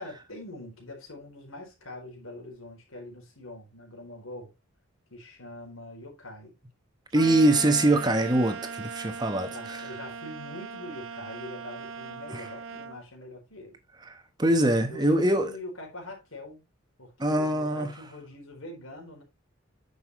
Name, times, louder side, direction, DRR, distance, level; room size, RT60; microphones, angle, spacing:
voice 1, 0.0-4.5 5.1-6.6 9.5-13.8 14.9-16.6 17.0-19.2, left 1 dB, 80° left, 4.1 m, -43 dB
voice 2, 7.1-9.8 12.3-12.5 14.1-15.5 17.2-17.9, right 1 dB, 20° right, 1.1 m, -23 dB
sound 1, 7.1-13.0, right 6 dB, 65° right, 0.8 m, -39 dB
9.6 x 6.7 x 3.1 m
head